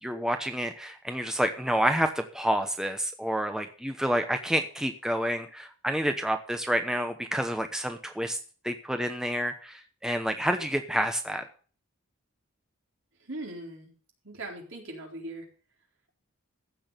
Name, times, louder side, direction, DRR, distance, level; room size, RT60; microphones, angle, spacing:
voice 1, 0.0-8.4 8.6-11.4, equal, 5° right, 6 dB, 0.8 m, -29 dB
voice 2, 13.2-13.9 14.2-15.5, right 2 dB, 70° right, 0 dB, 4.1 m, -39 dB
15.0 x 6.2 x 6.7 m, 0.40 s
head